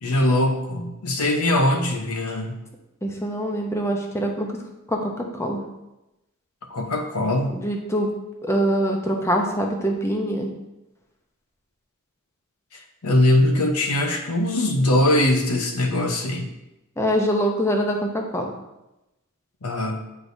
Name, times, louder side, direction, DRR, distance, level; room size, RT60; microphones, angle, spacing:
voice 1, 0.0-2.6 6.7-7.6 13.0-16.5 19.6-20.0, left 1 dB, 85° left, 4 dB, 0.8 m, -21 dB
voice 2, 3.0-4.5 4.9-5.6 7.5-8.1 8.4-10.5 17.0-18.5, equal, 10° left, 2 dB, 0.7 m, -24 dB
8.5 x 4.8 x 2.6 m, 0.94 s
head